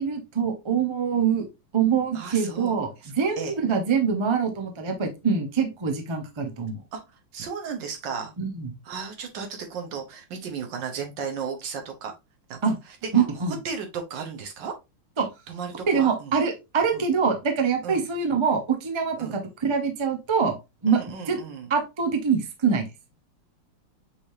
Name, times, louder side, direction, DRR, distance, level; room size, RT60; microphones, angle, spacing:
voice 1, 0.0-1.4 1.7-2.9 3.1-6.8 8.4-8.7 12.6-12.8 13.1-13.5 15.2-15.3 15.9-20.5 20.8-21.0 21.3-21.4 21.7-22.8, right 6 dB, 45° right, 4 dB, 0.3 m, -24 dB
voice 2, 2.1-2.7 3.0-3.6 6.9-7.0 7.3-8.3 8.8-12.1 12.5-12.6 13.0-13.1 13.6-14.7 15.5-16.3 16.9-17.0 17.8-18.1 19.2-19.4 20.9-21.7, right 6 dB, 75° right, 4 dB, 1.7 m, -34 dB
6.1 x 3.3 x 2.6 m, 0.24 s
omnidirectional pair, 2.0 m